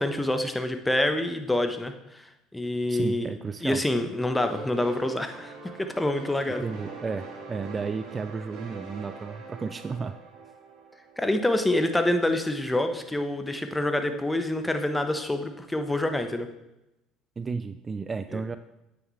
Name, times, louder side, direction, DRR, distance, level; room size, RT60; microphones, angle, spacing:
voice 1, 0.0-3.3 3.6-5.5 5.8-6.6 11.2-16.5 18.3-18.4, left 1 dB, 10° left, 7 dB, 1.1 m, -27 dB
voice 2, 2.9-3.8 6.6-10.2 17.4-18.6, right 4 dB, 30° right, 12 dB, 0.4 m, -33 dB
sound 1, 4.4-11.8, right 4 dB, 55° right, 2.4 m, -43 dB
9.5 x 8.6 x 3.2 m, 0.91 s
hypercardioid pair, 65°, 0 cm